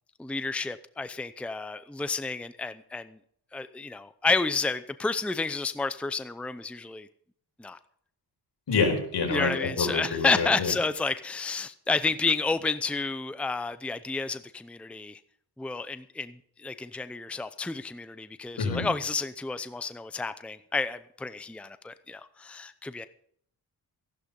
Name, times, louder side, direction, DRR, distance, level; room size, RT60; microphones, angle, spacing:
voice 1, 0.2-3.2 3.5-7.1 7.6-7.8 9.3-15.2 15.6-23.1, left 4 dB, 5° left, 12 dB, 0.6 m, -30 dB
voice 2, 8.7-10.7 18.6-18.9, left 4 dB, 75° left, 2 dB, 4.9 m, -27 dB
14.5 x 12.0 x 5.4 m, 0.64 s
cardioid pair, 90°, 41 cm